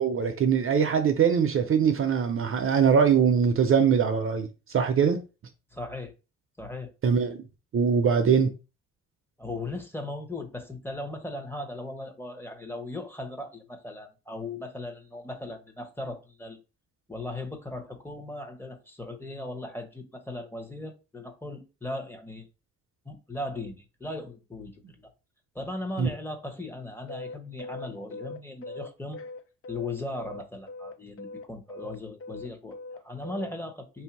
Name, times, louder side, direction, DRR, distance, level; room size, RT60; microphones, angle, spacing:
voice 1, 0.0-5.2 7.0-7.4 7.7-8.5 26.0-26.1, right 7 dB, 45° right, 0.6 m, -22 dB
voice 2, 5.7-6.1 6.6-6.9 9.4-16.6 17.1-22.5 23.0-25.1 25.5-29.2 29.7-34.0, left 2 dB, 5° left, 1.0 m, -38 dB
sound 1, 27.1-30.4 30.7-33.5, left 3 dB, 45° left, 0.6 m, -40 dB
3.3 x 2.7 x 4.6 m
cardioid pair, 90°, 30 cm